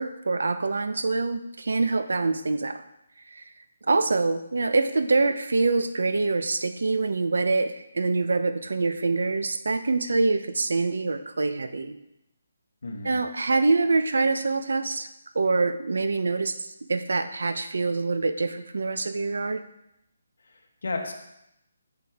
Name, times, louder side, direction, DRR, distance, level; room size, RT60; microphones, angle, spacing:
voice 1, 0.0-2.8 3.3-3.4 3.9-11.9 13.0-15.1 15.3-19.6, right 3 dB, 70° right, 10 dB, 0.6 m, -25 dB
voice 2, 12.8-13.2 20.5-21.1, left 3 dB, 65° left, 3 dB, 1.2 m, -33 dB
7.8 x 6.8 x 3.5 m, 0.84 s
hypercardioid pair, 180°, 0 cm